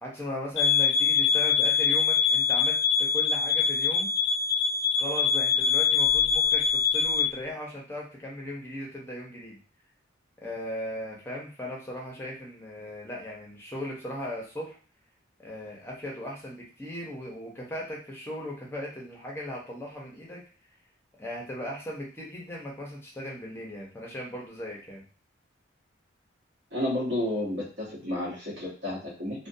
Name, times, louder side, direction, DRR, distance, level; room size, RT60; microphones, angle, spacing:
voice 1, 0.0-4.1 5.0-9.6 10.4-14.8 15.4-20.4 21.2-25.0, left 1 dB, 10° left, -3 dB, 0.7 m, -37 dB
sound 1, 0.6-7.3, left 6 dB, 65° left, 0.3 m, -24 dB
voice 2, 26.7-29.5, left 1 dB, 60° right, -5 dB, 1.0 m, -31 dB
2.5 x 2.2 x 2.6 m, 0.38 s
head